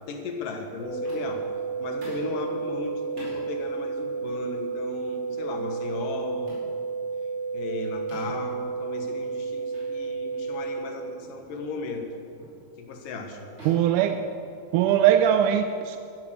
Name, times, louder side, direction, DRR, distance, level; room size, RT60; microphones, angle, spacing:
voice 1, 0.1-1.5 1.8-6.6 7.5-12.1 12.8-13.5, left 3 dB, 90° left, 4 dB, 3.2 m, -36 dB
sound 1, 0.8-10.8, right 4 dB, 65° right, 4.2 m, -32 dB
sound 2, 1.0-1.5 2.0-2.4 3.2-3.4 4.2-4.4 5.3-5.5 6.5-6.7 8.1-8.5 9.7-9.9 10.3-10.5 11.2-11.5 12.4-12.6 13.6-14.8, equal, 40° right, 6.1 m, -46 dB
voice 2, 13.7-14.3 14.7-16.0, right 10 dB, 85° right, 8 dB, 2.1 m, -21 dB
15.5 x 13.0 x 6.6 m, 2.5 s
omnidirectional pair, 3.7 m